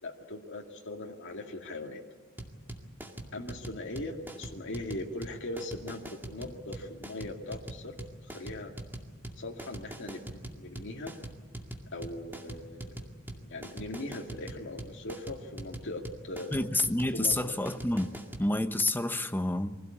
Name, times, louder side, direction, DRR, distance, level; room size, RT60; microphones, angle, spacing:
voice 1, 0.0-2.0 3.3-7.9 8.2-8.7 9.4-11.1 11.9-12.9 13.3-16.6 17.1-17.6, left 2 dB, 60° left, 2.2 m, -40 dB
sound 1, 2.4-18.5, right 1 dB, 10° right, 2.2 m, -42 dB
voice 2, 16.5-19.7, left 2 dB, 10° left, 0.9 m, -29 dB
24.0 x 16.5 x 8.5 m
head